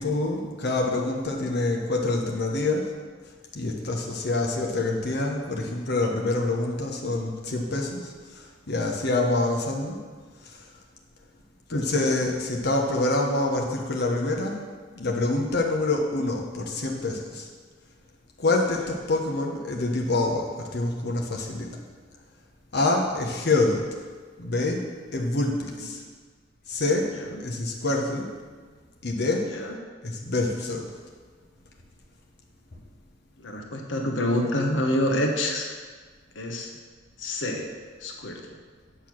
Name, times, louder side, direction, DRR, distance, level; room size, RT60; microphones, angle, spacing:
voice 1, 0.0-2.9 3.5-10.0 10.4-10.6 11.7-14.6 14.9-17.5 18.4-21.7 22.7-23.9 24.4-24.9 25.1-26.0 26.7-27.1 27.4-28.3 29.0-29.5 30.0-30.9, left 2 dB, 60° left, 0 dB, 1.1 m, -26 dB
voice 2, 33.4-35.7 36.3-36.7 37.2-37.7 38.0-38.6, left 1 dB, 85° left, 2 dB, 1.2 m, -27 dB
8.6 x 6.7 x 6.1 m, 1.5 s
head